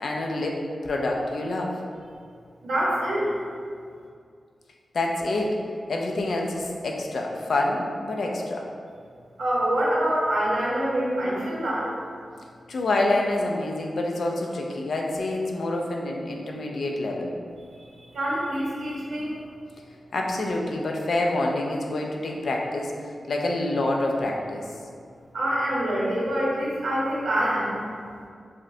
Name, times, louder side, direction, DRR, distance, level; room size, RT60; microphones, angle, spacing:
voice 1, 0.0-1.8 4.9-5.6 5.9-8.7 12.7-17.4 20.1-24.7, left 2 dB, 60° left, 0 dB, 0.4 m, -27 dB
voice 2, 2.6-3.3 9.4-11.9 18.1-19.4 25.3-27.8, right 1 dB, 85° right, -6 dB, 0.8 m, -25 dB
4.9 x 2.1 x 2.6 m, 2.3 s
wide cardioid pair, 175°, 0 cm